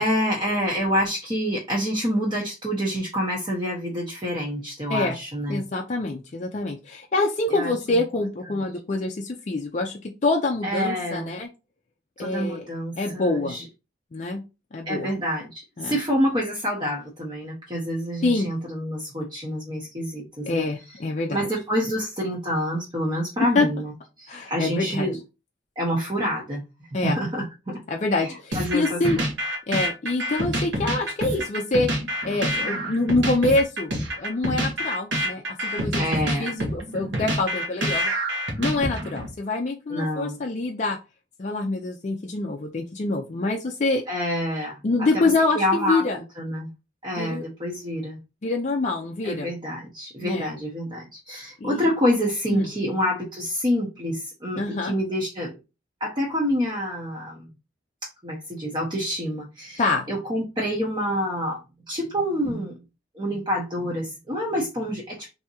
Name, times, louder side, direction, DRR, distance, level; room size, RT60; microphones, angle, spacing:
voice 1, 0.0-5.6 7.5-8.0 10.6-11.3 12.2-13.6 14.9-20.7 21.3-23.9 24.2-25.2 25.8-26.6 27.0-27.8 28.2-28.3 28.5-29.0 36.0-36.5 39.9-40.4 44.1-45.3 45.6-46.0 46.4-46.7 47.0-48.2 49.2-55.5 56.0-57.5 58.0-59.8 60.1-62.8 63.1-65.3, equal, 25° right, 0.7 m, -27 dB
voice 2, 5.5-11.5 12.2-12.7 13.0-13.6 14.1-14.4 14.7-15.1 15.8-16.0 18.2-18.5 20.4-21.5 23.5-23.7 24.3-25.1 26.9-27.2 27.9-29.2 29.7-31.9 32.2-36.0 36.4-38.1 38.6-41.0 41.4-44.0 44.8-46.2 47.2-47.5 48.4-49.5 50.2-50.5 51.6-51.9 52.5-52.7 54.6-54.9 59.8-60.1, left 2 dB, 40° left, 0.4 m, -25 dB
sound 1, 28.5-39.3, equal, 75° right, 1.0 m, -27 dB
3.4 x 2.7 x 2.8 m
head